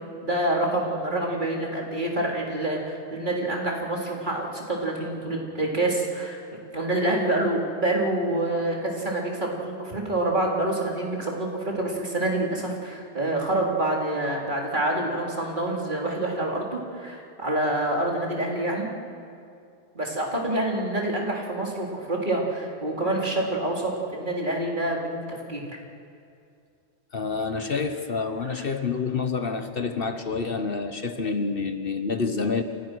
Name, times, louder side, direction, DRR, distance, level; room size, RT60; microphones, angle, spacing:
voice 1, 0.2-6.4 6.7-18.9 19.9-25.8 28.5-28.6, right 1 dB, 45° right, -2 dB, 4.0 m, -27 dB
voice 2, 27.1-32.6, left 4 dB, 55° left, 8 dB, 1.3 m, -28 dB
29.0 x 27.5 x 6.3 m, 2.5 s
omnidirectional pair, 1.2 m